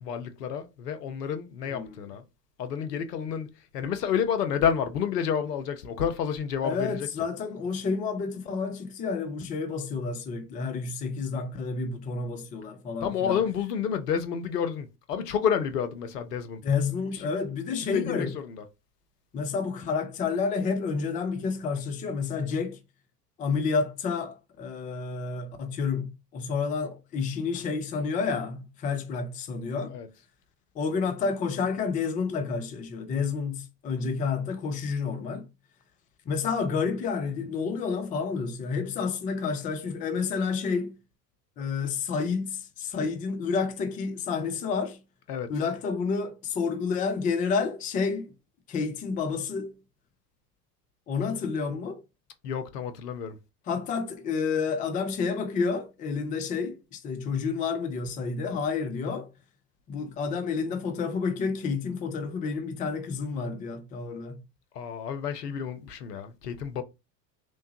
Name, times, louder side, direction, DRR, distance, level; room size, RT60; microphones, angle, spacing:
voice 1, 0.0-2.2 2.6-3.5 3.7-7.1 13.0-16.6 17.1-17.2 17.9-18.6 29.9-30.1 45.3-45.5 52.4-53.4 64.7-66.8, left 8 dB, 70° left, 0.8 m, -30 dB
voice 2, 1.7-2.1 6.6-13.4 16.6-18.3 19.3-22.8 23.4-30.0 30.7-35.5 36.3-41.0 41.6-45.0 45.5-48.3 48.7-49.8 51.1-52.0 53.7-59.3 59.9-64.4, left 5 dB, 15° left, 0.4 m, -30 dB
3.3 x 3.1 x 2.8 m
figure-of-eight pair, 80°, 49 cm